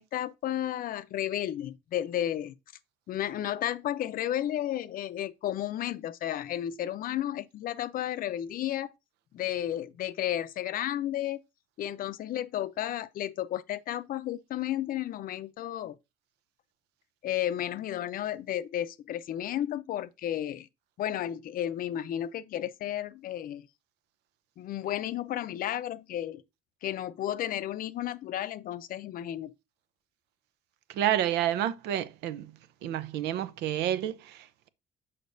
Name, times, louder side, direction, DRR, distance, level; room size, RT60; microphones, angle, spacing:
voice 1, 0.0-2.5 3.1-8.9 9.3-11.4 11.8-16.0 17.2-20.7 21.0-23.7 24.6-26.4 26.8-29.5, left 12 dB, 55° left, 0.5 m, -33 dB
voice 2, 30.9-32.5 32.8-34.7, right 11 dB, 85° right, 0.6 m, -29 dB
6.5 x 5.7 x 2.6 m
cardioid pair, 110°, 17 cm